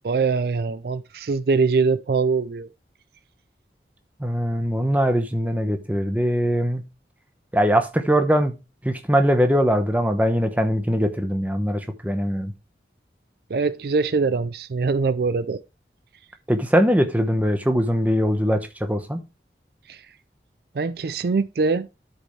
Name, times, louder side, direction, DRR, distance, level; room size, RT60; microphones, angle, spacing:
voice 1, 0.0-2.7 13.5-15.6 19.9-20.1 20.7-21.9, right 4 dB, 60° right, 0.4 m, -23 dB
voice 2, 4.2-6.8 7.5-8.5 8.8-12.5 16.5-19.2, equal, 10° right, 0.9 m, -21 dB
12.0 x 5.4 x 3.2 m
head